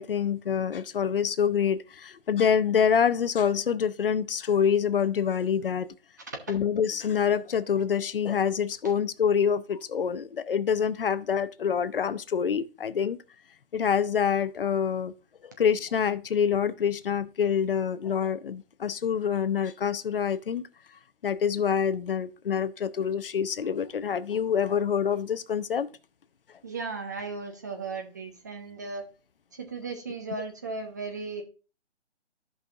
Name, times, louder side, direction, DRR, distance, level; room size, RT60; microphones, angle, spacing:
voice 1, 0.0-5.9 6.5-13.2 13.7-15.1 15.4-20.6 21.2-25.9, left 7 dB, 55° left, 0.6 m, -26 dB
voice 2, 26.6-29.1 29.5-31.4, right 4 dB, 15° right, 0.5 m, -36 dB
13.5 x 5.4 x 2.4 m
figure-of-eight pair, 150°, 34 cm